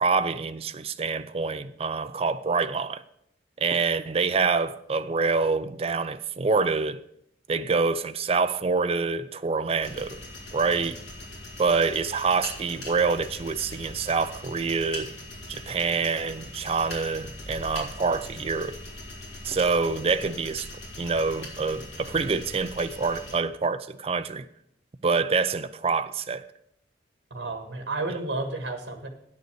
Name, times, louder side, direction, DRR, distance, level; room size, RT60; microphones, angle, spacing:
voice 1, 0.0-3.0 3.6-7.0 7.5-10.2 10.5-11.0 11.6-15.1 15.5-18.8 19.4-20.7 21.0-24.5 25.0-26.4, right 4 dB, 30° right, 0.4 m, -26 dB
sound 1, 9.8-23.4, left 1 dB, 70° left, 3.4 m, -41 dB
voice 2, 27.3-29.1, right 2 dB, 65° right, 1.7 m, -31 dB
9.2 x 6.6 x 6.7 m
head